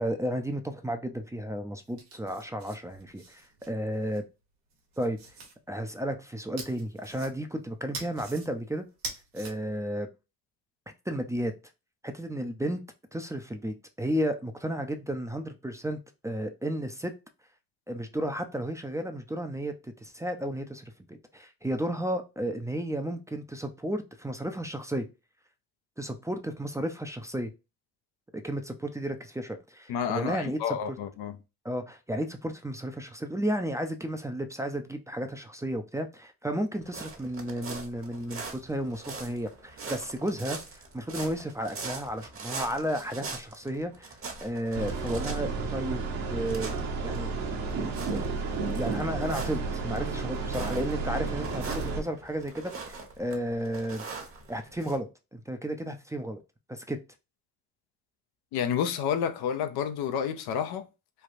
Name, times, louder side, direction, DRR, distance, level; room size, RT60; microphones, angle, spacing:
voice 1, 0.0-4.2 5.0-5.2 5.7-8.8 9.3-10.1 11.1-11.5 12.0-12.8 13.1-16.0 16.2-17.1 17.9-25.0 26.0-27.5 28.3-31.0 31.6-44.1 44.4-46.0 46.3-46.7 47.0-47.3 48.0-54.0 54.5-56.4 56.7-57.0, right 1 dB, 10° right, 0.5 m, -33 dB
sound 1, 1.8-4.2 4.7-5.5 6.6-7.6 7.9-8.5 8.9-9.5, right 3 dB, 80° right, 1.3 m, -43 dB
voice 2, 29.9-31.4 58.5-60.9, left 8 dB, 75° left, 0.7 m, -30 dB
sound 2, 36.8-55.0, right 4 dB, 35° right, 1.1 m, -42 dB
sound 3, 44.7-52.0, right 4 dB, 60° right, 1.2 m, -32 dB
3.3 x 2.3 x 2.6 m
supercardioid pair, 65°, 39 cm